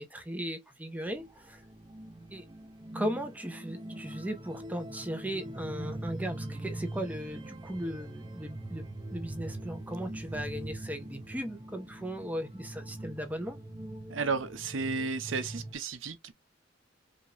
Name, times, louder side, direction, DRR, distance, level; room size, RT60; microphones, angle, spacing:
voice 1, 0.0-1.6 2.3-2.4 2.9-8.9 9.1-13.6, equal, 10° right, 0.9 m, -37 dB
sound 1, 1.1-15.7, right 1 dB, 25° right, 0.6 m, -42 dB
voice 2, 14.1-16.3, right 4 dB, 90° right, 0.7 m, -33 dB
5.1 x 2.7 x 2.5 m
head